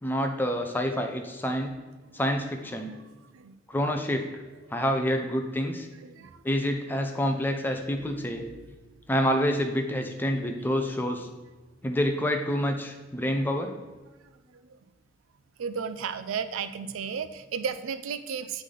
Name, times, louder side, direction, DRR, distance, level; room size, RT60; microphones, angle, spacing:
voice 1, 0.0-1.7 2.1-2.9 3.7-4.3 4.7-5.9 6.4-8.4 9.1-11.3 11.8-13.7, equal, 10° left, 4 dB, 0.5 m, -27 dB
voice 2, 2.8-3.6 4.7-4.8 5.9-6.4 8.5-8.6 10.3-10.4 14.5-14.8 15.6-18.6, right 6 dB, 85° right, 11 dB, 0.4 m, -35 dB
8.1 x 3.3 x 3.8 m, 1.2 s
head